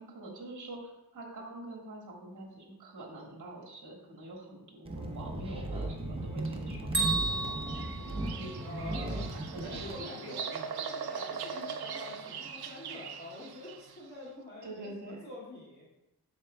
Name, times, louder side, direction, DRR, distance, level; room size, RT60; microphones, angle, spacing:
voice 1, 0.0-7.6 8.0-11.0 11.5-11.7 14.6-15.3, right 2 dB, 50° right, -1 dB, 1.8 m, -46 dB
sound 1, 4.8-9.9, right 1 dB, 15° right, 0.6 m, -36 dB
Bell, 6.9-9.0, right 3 dB, 30° right, 1.1 m, -33 dB
Bird vocalization bird call bird song, 7.4-14.1, right 6 dB, 80° right, 0.5 m, -41 dB
voice 2, 8.6-9.2 9.7-10.3 10.7-15.8, left 1 dB, 25° left, -8 dB, 1.9 m, -46 dB
7.8 x 6.1 x 2.2 m, 0.92 s
wide cardioid pair, 170°, 38 cm